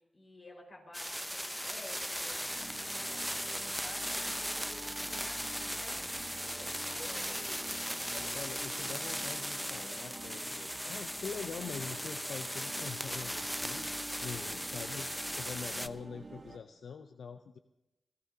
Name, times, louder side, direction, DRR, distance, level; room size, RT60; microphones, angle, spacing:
voice 1, 0.0-8.9 15.4-15.8 16.3-16.7, left 2 dB, 50° left, 1 dB, 4.7 m, -53 dB
sound 1, 0.9-15.9, equal, ahead, 0.6 m, -38 dB
sound 2, 2.1-16.6, right 3 dB, 55° right, 0.9 m, -49 dB
voice 2, 8.3-13.9 14.2-17.6, left 6 dB, 85° left, 8 dB, 0.4 m, -44 dB
26.5 x 13.5 x 2.8 m, 0.91 s
cardioid pair, 40°, 0 cm